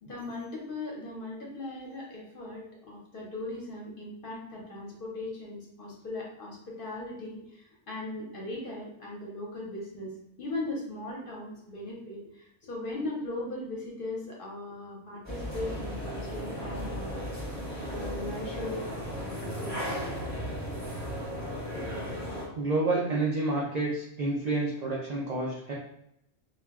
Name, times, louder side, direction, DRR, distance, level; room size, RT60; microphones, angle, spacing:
voice 1, 0.0-17.2 17.9-18.9 19.1-20.0 21.7-21.8, left 2 dB, 55° left, -3 dB, 0.7 m, -38 dB
sound 1, 15.2-22.5, equal, 15° right, 0.6 m, -35 dB
voice 2, 22.5-25.7, right 2 dB, 75° right, -4 dB, 0.3 m, -29 dB
2.2 x 2.1 x 3.4 m, 0.77 s
omnidirectional pair, 1.3 m